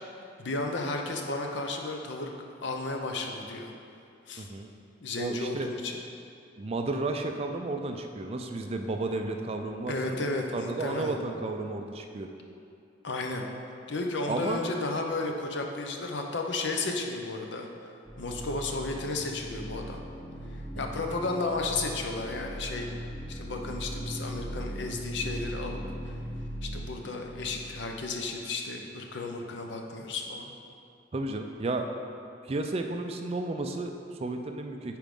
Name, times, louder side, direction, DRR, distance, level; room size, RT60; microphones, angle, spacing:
voice 1, 0.4-2.3 2.6-3.7 4.3-4.5 5.0-6.0 9.9-11.2 13.0-13.4 13.9-17.7 18.2-20.0 20.8-22.9 23.3-25.8 26.6-30.5, left 3 dB, 65° left, 2 dB, 0.7 m, -33 dB
voice 2, 4.4-4.7 5.2-5.7 6.6-10.2 10.5-12.3 14.3-14.6 20.7-21.0 31.1-31.9 32.4-35.0, right 2 dB, 30° right, 4 dB, 0.4 m, -33 dB
sound 1, 18.0-27.9, equal, 5° left, 1.2 m, -39 dB
8.9 x 4.6 x 3.7 m, 2.6 s
head